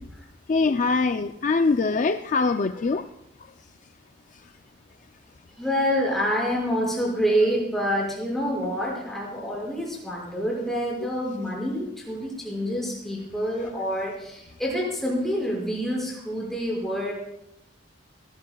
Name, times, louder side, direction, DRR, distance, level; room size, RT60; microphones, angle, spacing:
voice 1, 0.5-3.0 11.0-11.1 12.6-12.8, left 4 dB, 45° left, 8 dB, 0.4 m, -23 dB
voice 2, 5.6-17.1, equal, ahead, -4 dB, 5.9 m, -27 dB
19.5 x 17.0 x 2.3 m, 0.80 s
head